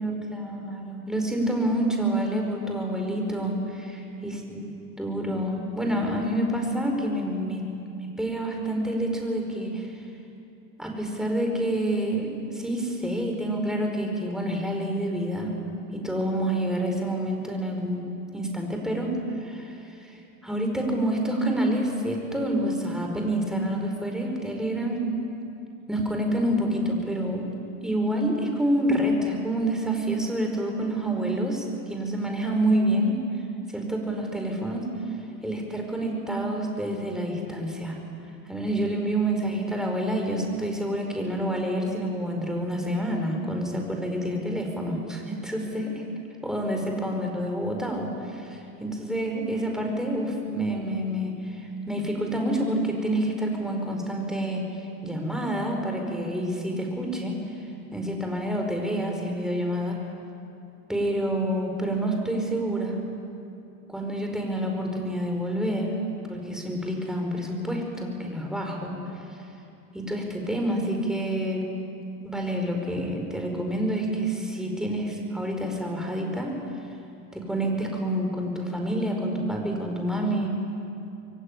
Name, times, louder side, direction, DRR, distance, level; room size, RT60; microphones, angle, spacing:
voice 1, 0.0-7.6 8.2-9.9 10.8-15.5 15.9-20.1 20.4-25.1 25.9-27.5 27.8-33.2 33.7-34.9 35.4-38.0 38.5-46.0 46.4-54.6 55.0-57.4 57.9-60.0 60.9-63.0 63.9-66.0 66.3-68.9 69.9-71.7 72.2-76.6 77.3-80.5, right 1 dB, ahead, 1 dB, 5.1 m, -28 dB
22.5 x 17.5 x 10.0 m, 2.7 s
hypercardioid pair, 90°, 49 cm